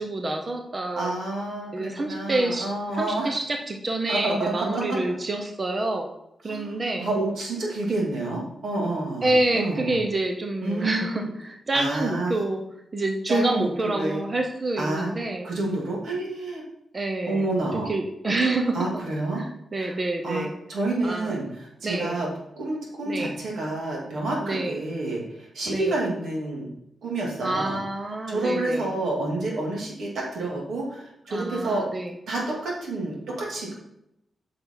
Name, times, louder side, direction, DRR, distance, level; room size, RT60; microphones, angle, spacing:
voice 1, 0.0-1.1 1.7-2.7 2.9-6.1 6.4-7.1 9.2-12.6 12.9-15.5 16.9-17.5 17.7-18.8 19.3-20.5 21.0-21.3 21.8-22.2 23.0-23.4 24.4-24.8 25.7-26.0 27.4-28.9 31.3-32.1, right 2 dB, 25° right, 3 dB, 0.7 m, -27 dB
voice 2, 1.0-3.3 4.1-5.0 6.5-10.0 10.6-11.3 11.7-12.3 13.3-14.2 14.8-15.1 15.4-16.6 17.3-17.9 18.7-19.4 19.8-19.9 20.2-20.4 20.7-22.3 22.6-26.7 27.0-27.8 28.3-31.8 32.3-33.7, right 2 dB, 90° right, -3 dB, 2.7 m, -29 dB
8.7 x 5.7 x 3.9 m, 0.80 s
wide cardioid pair, 180°, 0 cm